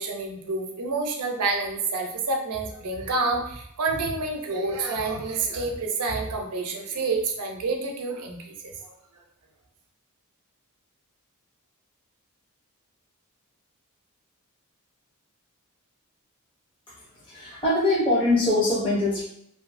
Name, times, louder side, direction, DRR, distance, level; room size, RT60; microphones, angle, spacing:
voice 1, 0.0-8.7, right 3 dB, 90° right, 2 dB, 0.5 m, -28 dB
voice 2, 17.3-19.2, left 2 dB, 25° left, -8 dB, 0.7 m, -22 dB
2.7 x 2.5 x 2.5 m, 0.71 s
head